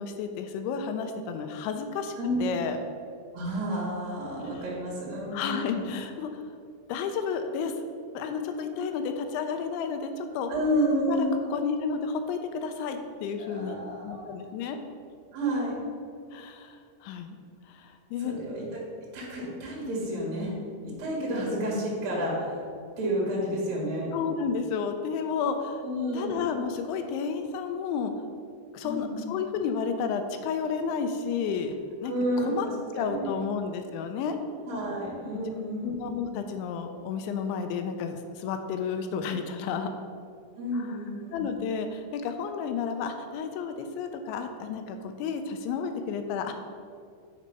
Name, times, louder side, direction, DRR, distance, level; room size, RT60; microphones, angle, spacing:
voice 1, 0.0-2.2 2.4-2.8 5.3-6.3 6.9-7.7 8.1-10.5 11.1-13.8 14.0-14.8 16.3-17.4 17.7-18.4 24.1-25.8 26.1-28.1 28.7-31.8 32.0-32.1 32.5-32.7 33.0-34.4 35.8-39.9 40.8-40.9 41.3-46.5, left 6 dB, 85° left, 7 dB, 2.8 m, -31 dB
voice 2, 3.3-5.9 10.5-11.3 13.4-14.3 15.3-15.8 18.2-18.8 19.1-20.5 21.0-22.6 23.0-24.1 25.8-26.4 28.8-29.3 32.0-33.3 34.6-36.2 40.6-41.5, equal, 50° right, -4 dB, 2.4 m, -30 dB
8.0 x 5.4 x 5.4 m, 2.4 s
omnidirectional pair, 5.4 m